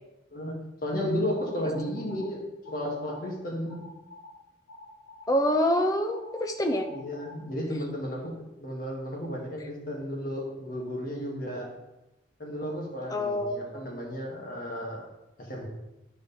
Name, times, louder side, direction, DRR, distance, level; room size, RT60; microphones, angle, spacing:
voice 1, 0.8-2.4 2.7-3.9 6.9-8.3 8.6-11.7 12.4-15.0 15.4-15.7, equal, 50° left, -1 dB, 1.9 m, -33 dB
sound 1, 1.3-2.3 2.6-3.3 3.7-4.3 4.7-7.4, left 2 dB, 90° left, 1.7 m, -48 dB
voice 2, 5.3-6.9 13.1-13.9, equal, 20° left, 5 dB, 0.7 m, -26 dB
9.7 x 5.1 x 4.1 m, 0.95 s
head